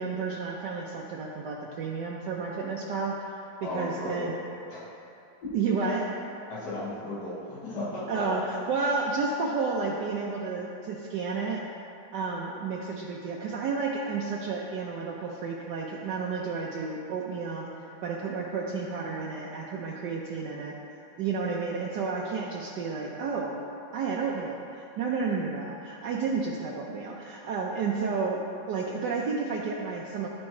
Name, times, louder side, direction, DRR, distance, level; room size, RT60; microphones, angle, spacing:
voice 1, 0.0-4.3 5.5-6.1 8.1-11.7 12.1-20.7 21.2-23.6 23.9-30.3, right 4 dB, 70° right, -2 dB, 1.1 m, -31 dB
voice 2, 3.6-4.3 4.7-4.8 6.5-8.4, left 1 dB, 60° left, -10 dB, 2.4 m, -35 dB
12.5 x 4.3 x 3.1 m, 2.7 s
omnidirectional pair, 2.1 m